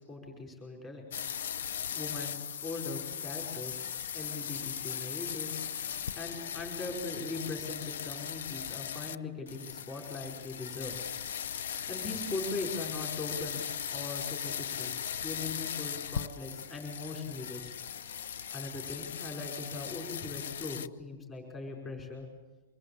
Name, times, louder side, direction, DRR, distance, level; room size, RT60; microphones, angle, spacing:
voice 1, 0.1-1.0 1.9-2.4 2.6-3.9 4.1-5.6 6.1-11.0 11.9-13.6 13.9-14.9 15.2-17.7 18.5-22.2, left 3 dB, 15° left, 1 dB, 5.2 m, -40 dB
sound 1, 1.1-9.2 9.5-20.9, left 8 dB, 70° left, 0.7 m, -38 dB
25.5 x 22.0 x 8.6 m, 1.1 s
supercardioid pair, 175°, 0 cm